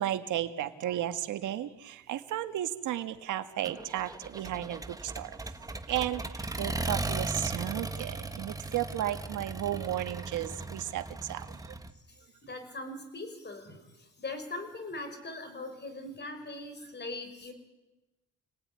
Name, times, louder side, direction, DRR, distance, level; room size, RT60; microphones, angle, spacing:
voice 1, 0.0-11.7, right 12 dB, 80° right, 9 dB, 1.7 m, -34 dB
Accelerating revving vroom, 3.6-11.9, right 2 dB, 10° right, 1.5 m, -37 dB
voice 2, 12.4-13.8 14.2-17.5, left 2 dB, 35° left, 8 dB, 6.0 m, -40 dB
29.5 x 18.5 x 9.8 m, 1.1 s
cardioid pair, 90°, 30 cm